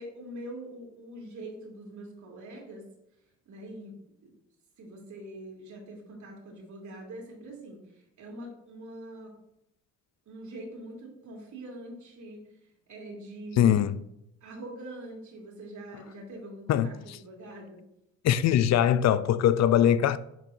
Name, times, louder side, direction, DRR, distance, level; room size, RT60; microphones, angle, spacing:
voice 1, 0.0-2.9 3.5-3.9 4.2-4.3 4.8-9.3 10.3-13.9 14.4-17.8, right 1 dB, 60° right, 2.6 m, -44 dB
voice 2, 13.6-14.0 16.7-17.2 18.2-20.2, left 10 dB, 55° left, 0.5 m, -22 dB
9.7 x 4.7 x 2.7 m
supercardioid pair, 70°, 33 cm